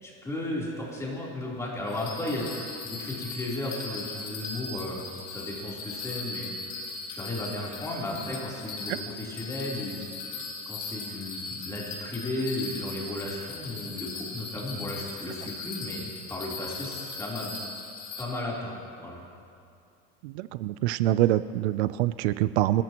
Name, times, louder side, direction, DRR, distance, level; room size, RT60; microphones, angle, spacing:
voice 1, 0.0-6.8 7.1-10.0 10.7-17.5 18.2-19.2, left 1 dB, 10° left, -5 dB, 3.6 m, -35 dB
Bell, 1.9-18.2, left 3 dB, 65° left, 3.5 m, -39 dB
voice 2, 20.2-22.8, right 14 dB, 80° right, 15 dB, 0.6 m, -25 dB
29.5 x 14.0 x 3.0 m, 2.5 s
supercardioid pair, 145°, 32 cm